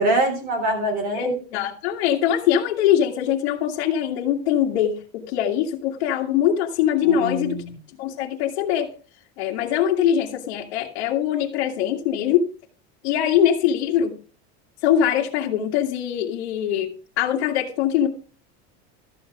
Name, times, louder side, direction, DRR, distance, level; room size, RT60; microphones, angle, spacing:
voice 1, 0.0-1.3 7.0-7.8, right 1 dB, 25° right, 4 dB, 3.6 m, -24 dB
voice 2, 1.1-7.6 8.0-8.9 9.4-12.5 13.0-14.2 14.8-16.9 17.2-18.1, left 9 dB, 70° left, -3 dB, 2.0 m, -22 dB
13.5 x 7.2 x 4.9 m, 0.37 s
supercardioid pair, 175°, 33 cm